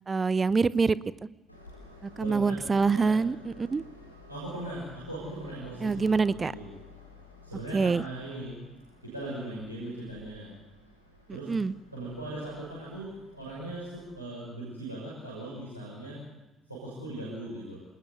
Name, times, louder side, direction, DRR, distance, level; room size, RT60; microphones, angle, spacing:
voice 1, 0.1-1.0 2.0-3.8 5.8-6.5 7.7-8.0 11.5-11.7, right 4 dB, 30° right, 18 dB, 0.8 m, -25 dB
Train, 1.5-14.1, left 3 dB, 90° left, 2.9 m, -53 dB
voice 2, 2.2-3.2 4.3-6.7 7.4-8.6 9.0-10.5 11.3-11.5 11.9-16.2 16.7-17.8, right 1 dB, 90° right, -8 dB, 6.5 m, -39 dB
27.0 x 20.0 x 8.3 m, 1.0 s
figure-of-eight pair, 45°, 0 cm